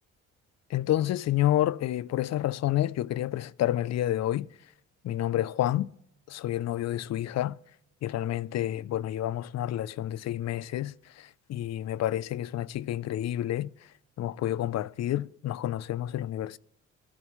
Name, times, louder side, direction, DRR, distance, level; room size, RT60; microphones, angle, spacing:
voice 1, 0.7-4.5 5.0-5.9 6.3-7.6 8.0-13.7 14.2-16.6, left 13 dB, 60° left, 0.5 m, -29 dB
24.5 x 11.0 x 3.1 m
cardioid pair, 90°, 30 cm